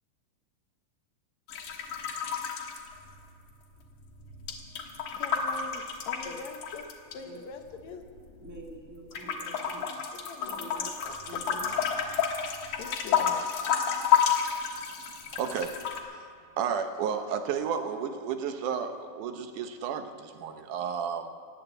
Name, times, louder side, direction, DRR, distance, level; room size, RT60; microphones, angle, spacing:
sound 1, 1.5-3.5 3.8-7.1 7.8-8.8 9.1-16.0, left 7 dB, 90° left, 2.9 m, -30 dB
voice 1, 5.1-8.0 10.1-11.9 12.8-13.5, left 5 dB, 70° left, 6 dB, 2.0 m, -44 dB
voice 2, 8.4-10.0 10.4-11.0 11.2-11.7, right 2 dB, 10° right, -1 dB, 1.3 m, -46 dB
voice 3, 15.3-15.8 16.6-21.3, right 7 dB, 85° right, 8 dB, 2.4 m, -32 dB
16.0 x 9.7 x 8.2 m, 2.4 s
omnidirectional pair, 3.5 m